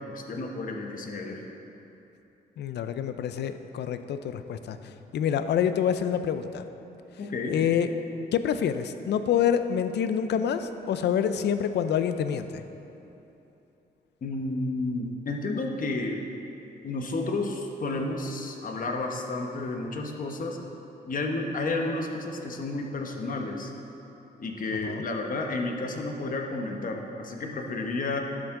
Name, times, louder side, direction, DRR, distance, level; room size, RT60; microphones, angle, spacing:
voice 1, 0.1-1.4 7.2-7.7 14.2-16.2 16.8-20.6 21.0-23.7 24.4-28.2, left 2 dB, 50° left, 2 dB, 1.1 m, -31 dB
voice 2, 2.6-6.7 7.5-7.9 8.3-12.6 24.8-25.0, left 8 dB, 75° left, 10 dB, 0.5 m, -27 dB
11.5 x 7.3 x 3.7 m, 3.0 s
cardioid pair, 100°, 18 cm